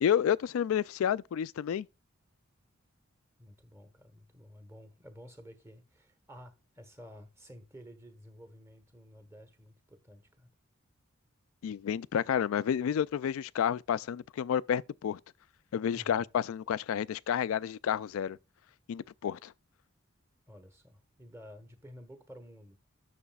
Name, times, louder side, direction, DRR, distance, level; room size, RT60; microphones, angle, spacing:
voice 1, 0.0-1.9 11.6-15.2 15.7-18.4 18.9-19.5, left 8 dB, 80° left, 0.3 m, -30 dB
voice 2, 3.4-10.5 15.9-16.3 20.5-22.8, equal, 10° right, 1.1 m, -52 dB
11.0 x 6.6 x 2.3 m
head